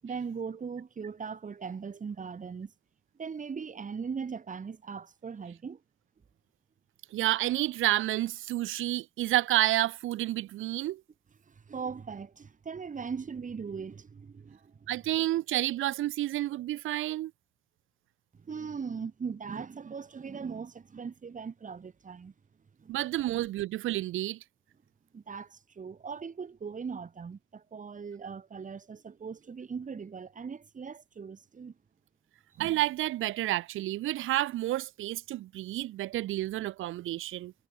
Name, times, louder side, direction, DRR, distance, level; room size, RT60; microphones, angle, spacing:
voice 1, 0.0-2.7 3.2-5.8 11.5-14.9 18.4-22.3 22.8-22.9 25.1-31.7, right 6 dB, 40° right, 7.7 m, -39 dB
voice 2, 7.1-11.0 14.9-17.3 22.9-24.4 32.6-37.5, right 15 dB, 85° right, 2.9 m, -30 dB
cardioid pair, 90°, 20 cm